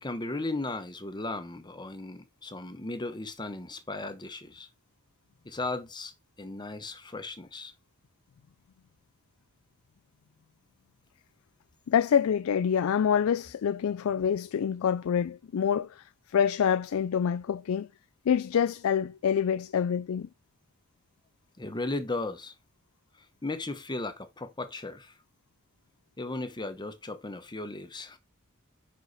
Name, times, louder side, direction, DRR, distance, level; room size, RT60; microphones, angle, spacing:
voice 1, 0.0-4.7 5.4-6.1 6.4-7.7 21.6-22.5 23.4-25.1 26.2-28.2, left 2 dB, 20° left, 1.0 m, -36 dB
voice 2, 11.9-16.0 16.3-17.9 18.3-20.3, left 8 dB, 70° left, 0.4 m, -26 dB
8.0 x 5.6 x 4.0 m
head